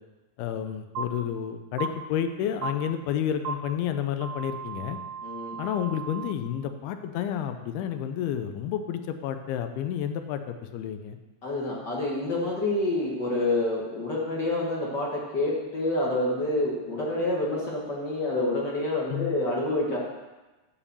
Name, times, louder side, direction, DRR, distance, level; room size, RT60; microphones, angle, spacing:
voice 1, 0.4-5.0 5.6-11.2 19.1-19.3, left 9 dB, 85° left, 8 dB, 2.6 m, -30 dB
sound 1, 0.9-1.0 1.8-1.9 2.6-2.7 3.4-3.5 4.2-6.3, right 6 dB, 90° right, 1.3 m, -35 dB
voice 2, 5.2-5.6 11.4-20.0, left 2 dB, 60° left, -4 dB, 1.1 m, -28 dB
10.5 x 5.0 x 6.9 m, 1.1 s
omnidirectional pair, 4.4 m